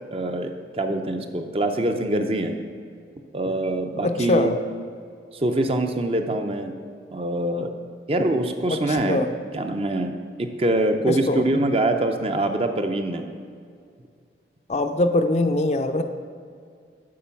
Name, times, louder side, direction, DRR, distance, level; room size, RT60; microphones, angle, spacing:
voice 1, 0.1-2.6 3.3-4.5 5.3-6.7 7.1-7.7 8.1-9.3 9.5-10.1 10.4-13.3, right 1 dB, 35° right, 6 dB, 0.5 m, -24 dB
voice 2, 4.0-4.5 8.7-9.3 11.1-11.4 14.7-16.0, left 2 dB, 40° left, 7 dB, 0.5 m, -22 dB
8.6 x 6.0 x 5.7 m, 2.2 s
head